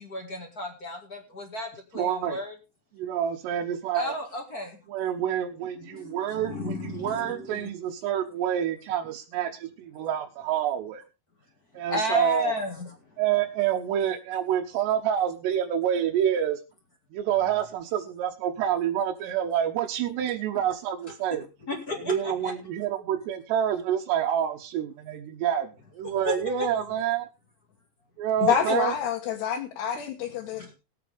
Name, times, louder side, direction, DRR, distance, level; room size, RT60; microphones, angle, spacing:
voice 1, 0.0-2.5 3.9-4.8 5.8-7.7 11.9-12.9 21.6-22.5 26.0-26.7 28.5-28.8 30.5-30.7, left 2 dB, 35° left, 1.5 m, -33 dB
voice 2, 2.0-2.4 2.9-4.1 4.9-11.0 11.7-12.5 13.2-16.6 17.1-21.4 22.0-27.3 28.2-28.9, right 10 dB, 85° right, 3.2 m, -27 dB
voice 3, 28.4-30.7, left 8 dB, 75° left, 3.5 m, -27 dB
20.5 x 8.7 x 3.5 m
omnidirectional pair, 4.8 m